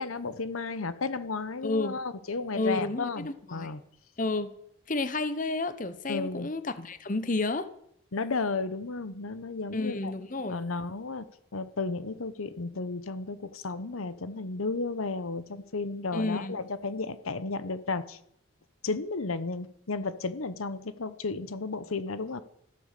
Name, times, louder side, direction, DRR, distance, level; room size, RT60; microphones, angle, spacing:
voice 1, 0.0-3.8 6.1-6.5 8.1-10.1 10.5-11.2 11.5-18.2 18.8-22.4, left 3 dB, 80° left, 14 dB, 0.9 m, -33 dB
voice 2, 1.6-1.9 2.6-3.7 4.2-4.5 4.9-7.7 9.7-10.6 16.1-16.6, left 2 dB, 40° left, 12 dB, 0.9 m, -31 dB
14.0 x 12.0 x 6.7 m, 0.72 s
head